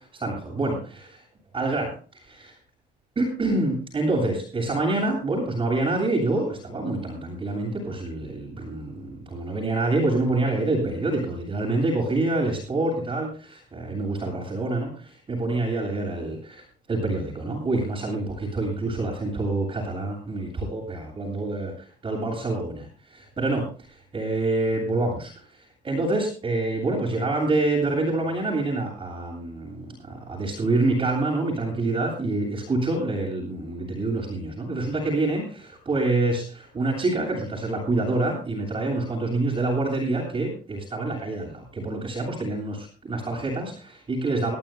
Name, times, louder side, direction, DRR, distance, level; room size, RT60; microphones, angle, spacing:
voice 1, 0.1-1.2 1.5-2.5 3.2-25.5 25.8-44.6, right 2 dB, 30° right, -4 dB, 7.7 m, -27 dB
23.0 x 14.0 x 2.3 m, 0.38 s
cardioid pair, 110°, 17 cm